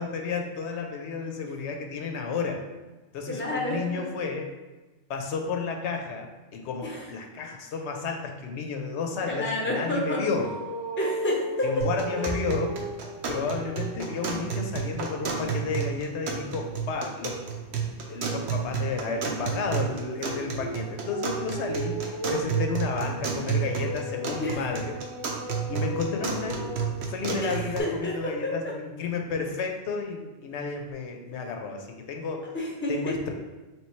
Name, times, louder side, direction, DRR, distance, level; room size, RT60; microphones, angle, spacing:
voice 1, 0.0-2.6 3.1-4.5 5.1-10.5 11.6-12.8 13.3-17.4 18.1-25.0 25.7-26.7 27.1-32.5 32.9-33.3, left 5 dB, 80° left, 3 dB, 0.9 m, -32 dB
voice 2, 3.3-4.1 6.8-7.1 9.3-10.2 11.0-11.7 24.4-24.6 27.3-28.5 32.5-33.2, left 1 dB, 10° left, -2 dB, 0.7 m, -30 dB
sound 1, 10.3-14.5 14.9-15.2 17.7-26.9, right 1 dB, 25° right, 0.7 m, -37 dB
sound 2, 11.8-27.8, right 6 dB, 75° right, 0.9 m, -32 dB
3.3 x 3.0 x 4.3 m, 1.1 s
omnidirectional pair, 1.1 m